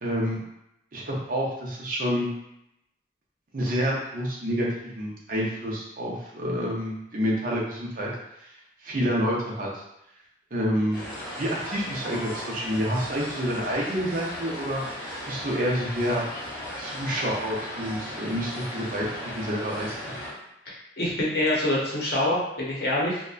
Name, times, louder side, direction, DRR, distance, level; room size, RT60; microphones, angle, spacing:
voice 1, 0.0-0.4 0.9-2.3 3.5-4.7 4.9-8.1 8.4-8.5 8.8-9.8 10.5-11.1 11.4-14.8 15.3-16.2 16.8-19.1 19.3-20.1, equal, 45° right, -3 dB, 0.5 m, -28 dB
sound 1, 10.9-20.3, equal, 25° left, 0.9 m, -37 dB
voice 2, 20.7-23.2, left 1 dB, 55° left, -5 dB, 0.7 m, -26 dB
2.7 x 2.2 x 2.3 m, 0.83 s
head